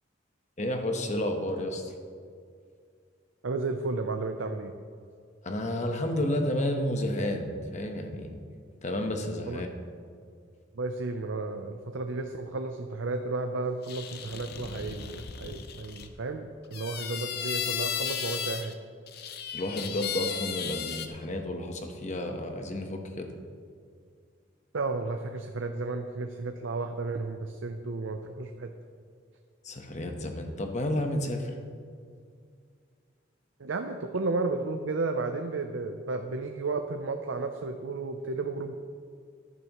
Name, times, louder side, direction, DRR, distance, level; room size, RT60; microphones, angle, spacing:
voice 1, 0.6-1.9 5.4-8.4 8.8-9.7 19.5-23.3 29.6-31.5, left 1 dB, 40° left, 4 dB, 1.1 m, -31 dB
voice 2, 3.4-4.7 9.5-9.6 10.7-18.8 24.7-28.7 33.6-38.7, right 3 dB, 90° right, 5 dB, 0.6 m, -33 dB
sound 1, 13.8-16.1 16.7-18.7 19.1-21.1, left 8 dB, 55° left, 0.7 m, -35 dB
14.0 x 11.0 x 3.1 m, 2.2 s
head